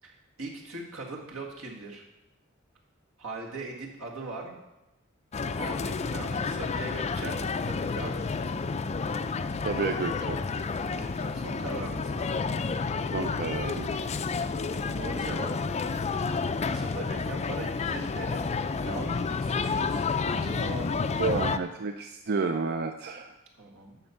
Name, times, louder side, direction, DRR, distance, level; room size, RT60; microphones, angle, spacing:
voice 1, 0.0-2.0 3.2-4.6 5.6-8.3 10.7-12.3 15.0-15.5 16.6-18.5 18.9-21.1 23.6-24.0, right 2 dB, 80° right, -1 dB, 2.0 m, -40 dB
sound 1, 5.3-21.6, left 4 dB, 30° left, 0.4 m, -30 dB
voice 2, 9.6-10.4 13.1-13.9 21.2-23.3, right 4 dB, 50° right, 6 dB, 0.5 m, -30 dB
11.5 x 4.3 x 7.1 m, 0.95 s
head